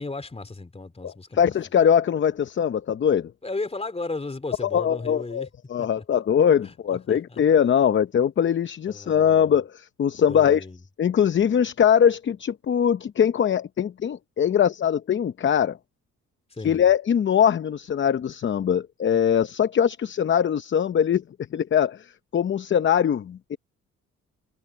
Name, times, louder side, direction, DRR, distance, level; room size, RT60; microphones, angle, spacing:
voice 1, 0.0-1.5 3.4-5.5 5.8-6.0 6.6-7.4 8.9-9.4 10.3-10.8 16.5-16.8, left 3 dB, 20° left, 3.3 m, -35 dB
voice 2, 1.0-3.3 4.7-10.6 11.0-15.8 16.6-21.2 21.5-23.6, left 8 dB, 40° left, 0.7 m, -22 dB
cardioid pair, 90°, 30 cm